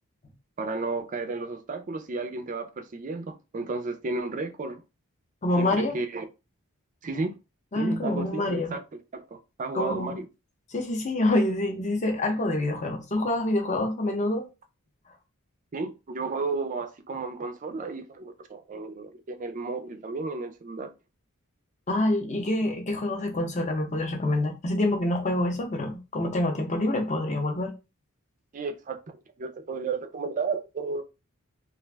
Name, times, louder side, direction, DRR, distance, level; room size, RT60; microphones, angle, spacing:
voice 1, 0.6-4.8 5.6-6.2 7.0-7.4 7.8-8.8 9.1-10.3 15.7-20.9 28.5-29.0 29.4-31.0, right 3 dB, 35° right, 0.4 m, -33 dB
voice 2, 5.4-6.0 7.7-8.7 9.7-10.2 10.7-14.5 21.9-27.7, left 1 dB, 35° left, 0.6 m, -26 dB
2.4 x 2.2 x 3.3 m
head